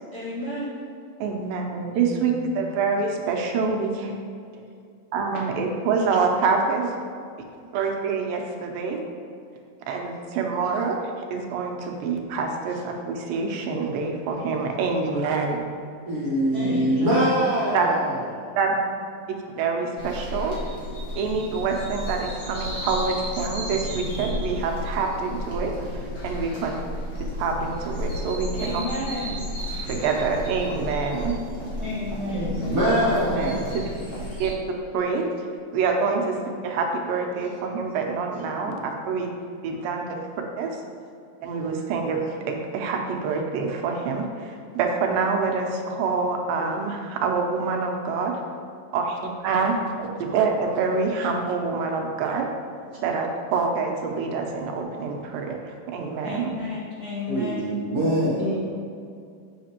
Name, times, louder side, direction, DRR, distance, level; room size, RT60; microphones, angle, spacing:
voice 1, 0.1-0.7 16.5-17.3 28.5-29.3 31.8-32.5 56.2-57.7, left 1 dB, 35° left, -12 dB, 1.7 m, -32 dB
voice 2, 1.2-4.1 5.1-6.9 7.7-9.0 9.9-15.6 17.7-17.9 18.6-18.7 19.3-20.6 21.2-26.7 27.4-28.8 29.9-31.4 33.4-33.6 34.4-34.5 34.9-35.3 35.7-36.4 36.6-39.3 39.6-40.2 40.6-40.8 41.4-48.4 48.9-52.5 53.0-56.5, right 4 dB, 85° right, 2 dB, 2.5 m, -26 dB
voice 3, 1.9-2.7 16.6-17.1 32.3-32.9 38.6-38.8 39.7-39.8 58.4-58.6, left 2 dB, 70° left, -7 dB, 1.2 m, -33 dB
voice 4, 16.1-18.6 32.6-33.8 57.3-58.5, equal, 55° right, -8 dB, 1.7 m, -24 dB
sound 1, 20.0-34.5, equal, 90° left, 0.8 m, -32 dB
7.3 x 6.6 x 2.9 m, 2.4 s
omnidirectional pair, 4.1 m